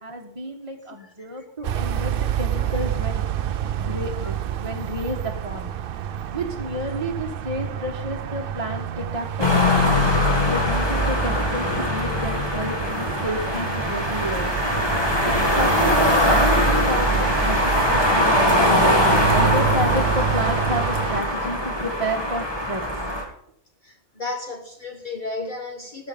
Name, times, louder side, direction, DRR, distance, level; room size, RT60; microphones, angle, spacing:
voice 1, 0.0-3.2 3.8-5.7 6.3-10.1 10.5-14.5 15.2-17.6 17.9-18.3 18.6-22.8, equal, 30° right, 1.3 m, -30 dB
sound 1, 1.6-21.2, right 9 dB, 60° right, 0.7 m, -29 dB
sound 2, 9.4-23.2, left 1 dB, 20° left, 2.4 m, -21 dB
voice 2, 23.8-26.1, left 3 dB, 40° left, 1.3 m, -34 dB
19.0 x 6.4 x 5.3 m
omnidirectional pair, 1.2 m